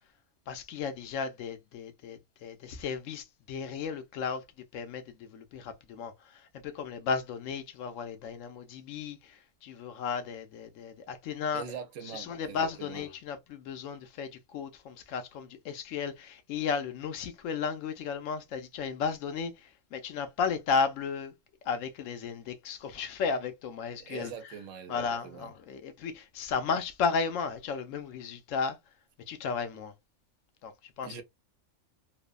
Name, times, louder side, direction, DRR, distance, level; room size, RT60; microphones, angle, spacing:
voice 1, 0.5-4.4 4.7-11.6 12.0-21.3 21.6-24.5 24.9-28.8 29.3-29.9 30.6-31.2, left 5 dB, 85° left, 1.0 m, -34 dB
voice 2, 11.5-13.1 24.0-25.5 31.0-31.2, right 7 dB, 85° right, 1.0 m, -43 dB
3.0 x 2.1 x 2.3 m
omnidirectional pair, 1.3 m